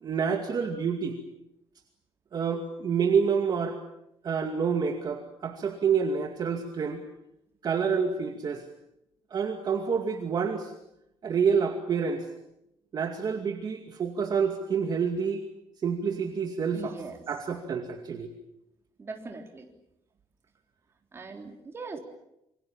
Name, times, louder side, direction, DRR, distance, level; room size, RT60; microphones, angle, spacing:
voice 1, 0.0-1.2 2.3-3.8 4.2-7.0 7.6-8.6 9.3-10.7 11.2-12.3 12.9-15.4 15.8-16.9 17.3-18.3, right 6 dB, 45° right, 4 dB, 2.3 m, -28 dB
voice 2, 16.7-17.2 19.0-19.7 21.1-22.0, right 4 dB, 25° right, 3 dB, 3.6 m, -40 dB
28.0 x 24.5 x 7.3 m, 0.84 s
cardioid pair, 160°, 10 cm